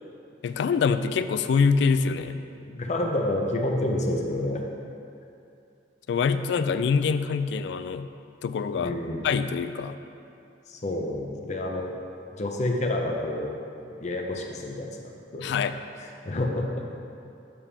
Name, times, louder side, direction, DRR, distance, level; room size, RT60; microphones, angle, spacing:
voice 1, 0.4-2.4 6.1-8.1 8.4-8.9 9.2-10.0 15.4-15.8, left 5 dB, 70° left, 11 dB, 0.3 m, -25 dB
voice 2, 2.6-4.6 8.7-9.3 10.7-11.9 12.3-13.5 14.0-15.6 16.0-16.8, left 1 dB, 40° left, 1 dB, 0.7 m, -29 dB
7.1 x 6.9 x 3.4 m, 2.6 s
head